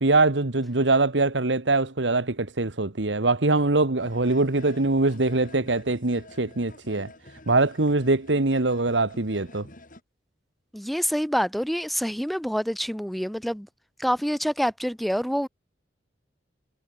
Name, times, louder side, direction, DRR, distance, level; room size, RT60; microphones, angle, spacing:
voice 1, 0.0-7.1 7.5-9.7, right 2 dB, 90° right, 1.6 m, -23 dB
sound 1, 4.0-10.0, left 2 dB, 50° left, 5.4 m, -49 dB
voice 2, 10.7-13.7 14.0-15.5, equal, ahead, 0.7 m, -26 dB
head